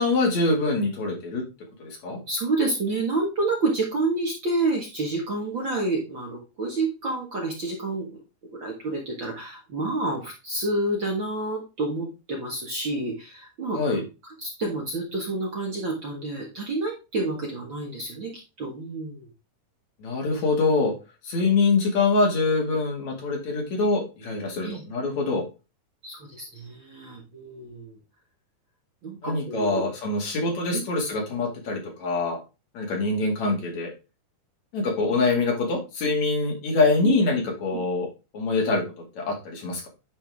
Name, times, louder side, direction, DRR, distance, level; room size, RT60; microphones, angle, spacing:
voice 1, 0.0-1.4 1.8-2.2 13.7-14.0 20.0-20.9 21.2-25.4 29.2-32.4 32.7-33.9 34.7-38.1 38.3-38.8 39.1-39.9, left 3 dB, 60° left, 0 dB, 3.3 m, -24 dB
voice 2, 2.3-8.1 8.6-14.0 14.2-18.3 18.6-19.3 24.6-24.8 26.0-28.0 29.0-29.8 30.7-30.8 35.3-35.4 37.0-37.2, right 2 dB, 45° right, -1 dB, 1.9 m, -29 dB
9.9 x 4.3 x 3.5 m, 0.28 s
omnidirectional pair, 3.8 m